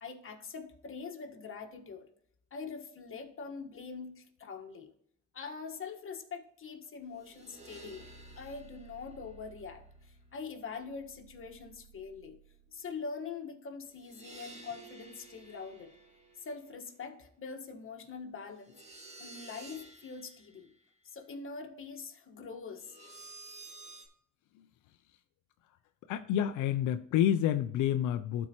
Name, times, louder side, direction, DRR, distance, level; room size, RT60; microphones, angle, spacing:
voice 1, 0.0-2.1 2.5-4.9 5.3-8.1 8.4-12.4 12.7-16.0 16.4-18.8 19.2-20.7 21.0-23.0, left 5 dB, 45° left, 3 dB, 1.4 m, -43 dB
sound 1, 7.0-12.9 13.8-16.7 18.6-20.6 22.8-24.1, right 3 dB, 20° right, 1.7 m, -53 dB
voice 2, 26.1-28.5, left 10 dB, 85° left, 9 dB, 0.5 m, -29 dB
13.0 x 4.5 x 3.0 m, 0.71 s
cardioid pair, 90°, 30 cm